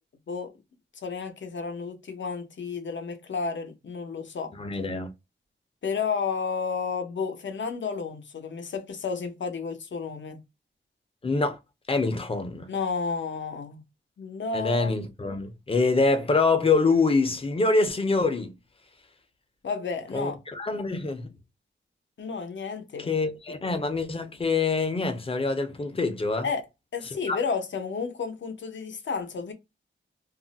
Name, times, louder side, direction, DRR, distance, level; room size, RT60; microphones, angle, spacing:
voice 1, 1.0-4.5 5.8-10.4 12.7-13.8 14.2-14.9 19.6-20.3 22.2-23.1 26.4-26.7 26.9-29.5, left 5 dB, 65° left, 0.6 m, -31 dB
voice 2, 4.6-5.1 11.2-11.6 11.9-12.7 14.5-18.5 20.1-21.3 23.0-26.5 27.3-27.4, left 3 dB, 30° left, 0.5 m, -25 dB
2.4 x 2.0 x 3.8 m
wide cardioid pair, 140°, 20 cm